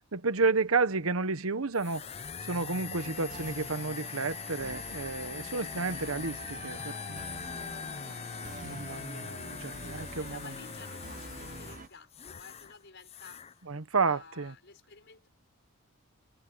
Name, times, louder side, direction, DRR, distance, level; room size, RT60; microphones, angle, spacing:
voice 1, 0.1-2.1 2.4-7.4 8.6-10.4 13.7-14.5, right 4 dB, 70° right, 1.1 m, -31 dB
sound 1, 1.7-12.7 13.0-13.5, left 6 dB, 30° left, 0.4 m, -42 dB
sound 2, 3.0-11.9, right 4 dB, 35° right, 0.7 m, -47 dB
voice 2, 9.8-13.7 14.0-15.3, left 4 dB, 55° left, 5.7 m, -53 dB
head